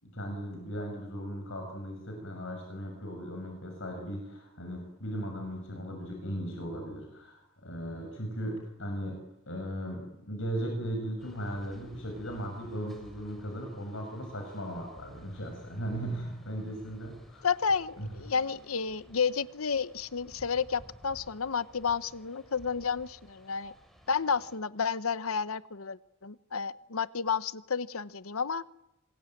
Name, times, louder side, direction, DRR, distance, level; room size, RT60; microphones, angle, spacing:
voice 1, 0.0-9.2 9.5-17.5 18.0-18.1, equal, 65° left, 3 dB, 6.9 m, -37 dB
sound 1, 11.2-24.6, equal, ahead, 5.1 m, -55 dB
voice 2, 17.4-23.7 24.1-28.6, left 6 dB, 85° left, 16 dB, 1.0 m, -31 dB
26.5 x 22.0 x 9.3 m, 0.89 s
head